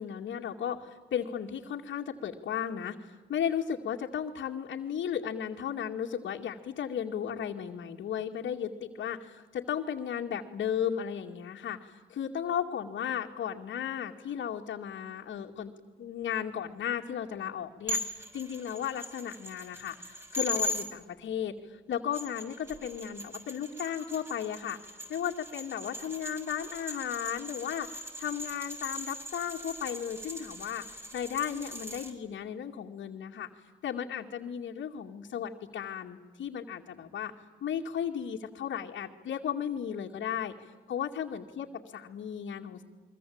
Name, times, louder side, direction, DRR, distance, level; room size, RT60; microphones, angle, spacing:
voice 1, 0.0-15.7 16.0-24.8 25.1-33.5 33.8-37.3 37.6-42.8, left 8 dB, 70° left, -1 dB, 2.4 m, -35 dB
sound 1, 17.9-20.8 21.9-32.1, left 1 dB, 10° right, 6.9 m, -39 dB
28.5 x 23.5 x 8.8 m, 1.3 s
cardioid pair, 90°, 20 cm